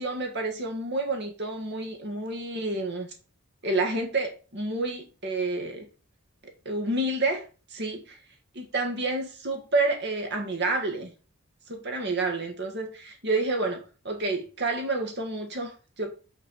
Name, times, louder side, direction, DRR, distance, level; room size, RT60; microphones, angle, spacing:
voice 1, 0.0-3.1 3.6-5.9 6.4-7.4 7.7-8.2 8.5-11.1 11.7-16.1, right 2 dB, 50° right, 1.8 m, -29 dB
6.0 x 4.6 x 6.3 m
head